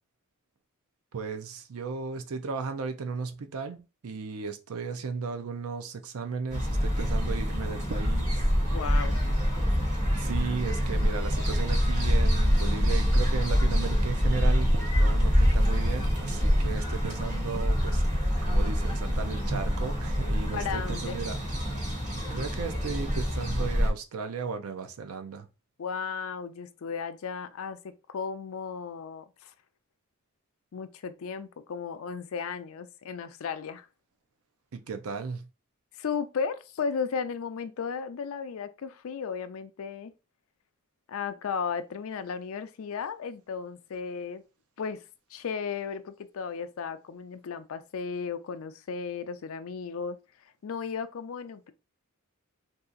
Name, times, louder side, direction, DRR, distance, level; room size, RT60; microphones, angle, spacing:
voice 1, 1.1-8.4 10.2-21.4 22.3-25.5 34.7-35.4, right 5 dB, 80° right, 0.5 m, -35 dB
sound 1, 6.5-23.9, equal, 35° right, 1.3 m, -25 dB
voice 2, 8.7-9.1 20.5-21.2 25.8-29.5 30.7-33.9 36.0-40.1 41.1-44.4 44.8-45.0 45.3-51.7, left 6 dB, 70° left, 0.4 m, -35 dB
2.7 x 2.4 x 3.7 m
head